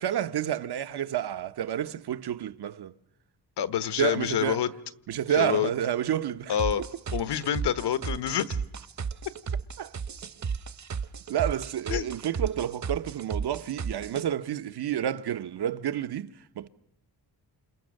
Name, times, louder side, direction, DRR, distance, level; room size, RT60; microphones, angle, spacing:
voice 1, 0.0-2.9 4.0-4.6 5.1-6.5 9.8-9.9 11.3-16.7, right 10 dB, 75° right, 1.0 m, -30 dB
voice 2, 3.6-4.7 5.3-5.7 6.5-6.8 7.1-8.6 11.9-12.1, left 10 dB, 85° left, 1.3 m, -27 dB
sound 1, 6.6-14.2, right 6 dB, 45° right, 0.9 m, -33 dB
28.5 x 28.5 x 6.5 m
cardioid pair, 105°, 40 cm